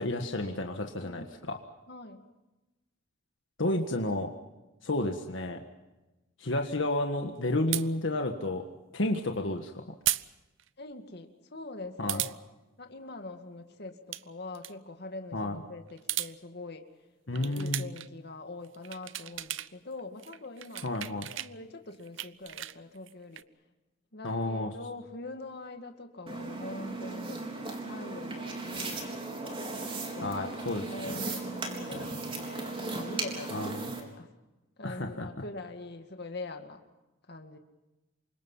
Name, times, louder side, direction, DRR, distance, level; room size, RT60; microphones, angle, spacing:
voice 1, 0.0-1.6 3.6-4.3 4.8-5.6 6.4-8.6 8.9-9.7 12.0-12.2 15.3-15.6 17.3-17.8 20.8-21.3 24.2-24.7 30.2-31.2 33.5-33.9 34.8-35.3, left 1 dB, 70° left, 4 dB, 1.6 m, -31 dB
voice 2, 1.9-2.2 9.0-9.2 10.8-12.4 12.8-16.9 17.3-21.1 21.4-23.4 24.1-29.6 30.1-34.3 34.8-36.8 37.3-37.6, left 2 dB, 55° left, 6 dB, 2.2 m, -43 dB
sound 1, 7.7-7.9 10.1-10.3 10.6-10.7 12.1-12.4 13.9-14.2 14.5-14.7 15.9-16.3 17.4-18.1 18.6-19.7 20.0-21.5 21.9-23.4, right 15 dB, 75° right, 0.7 m, -35 dB
sound 2, 26.3-34.0, right 3 dB, 25° right, 3.9 m, -37 dB
28.5 x 25.0 x 5.7 m, 1.1 s
head